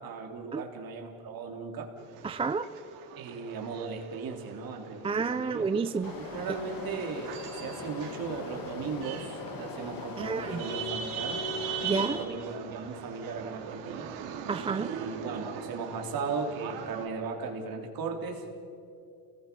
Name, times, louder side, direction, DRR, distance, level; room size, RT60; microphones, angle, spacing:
voice 1, 0.0-1.9 3.2-5.7 6.2-11.4 11.8-14.1 14.6-18.4, right 4 dB, 45° right, 2 dB, 3.9 m, -37 dB
sound 1, 2.0-17.1, right 6 dB, 80° right, 3.1 m, -41 dB
voice 2, 2.2-2.7 5.0-6.1 10.2-10.6 11.8-12.2 14.5-14.9, right 4 dB, 15° right, 11 dB, 0.4 m, -30 dB
sound 2, 6.0-12.2, left 4 dB, 45° left, 2.6 m, -41 dB
29.5 x 20.0 x 5.6 m, 2.7 s
cardioid pair, 120°, 47 cm